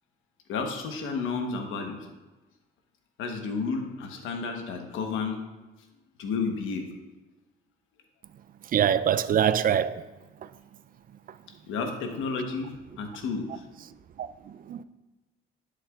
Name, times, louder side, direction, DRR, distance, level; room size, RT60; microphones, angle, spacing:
voice 1, 0.5-2.1 3.2-5.4 6.2-6.9 11.7-13.6, left 4 dB, 85° left, 1.1 m, -31 dB
voice 2, 8.7-10.0 14.2-14.3 14.7-14.8, right 9 dB, 45° right, 0.4 m, -23 dB
11.0 x 6.7 x 2.4 m
cardioid pair, 90°, 20 cm